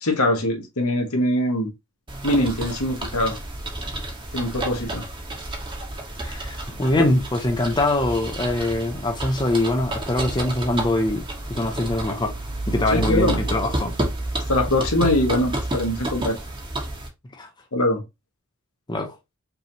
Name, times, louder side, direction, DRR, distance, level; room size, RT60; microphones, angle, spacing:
voice 1, 0.0-1.7 2.2-3.4 4.3-5.0 7.0-7.1 12.9-13.4 14.5-16.4 17.7-18.0, left 1 dB, 75° left, 1.4 m, -22 dB
sound 1, 2.1-17.1, right 1 dB, 20° right, 1.0 m, -30 dB
voice 2, 6.2-11.2 11.5-12.3 12.7-14.0 17.4-17.5 18.9-19.1, left 1 dB, 20° left, 0.5 m, -23 dB
5.4 x 2.7 x 2.8 m
head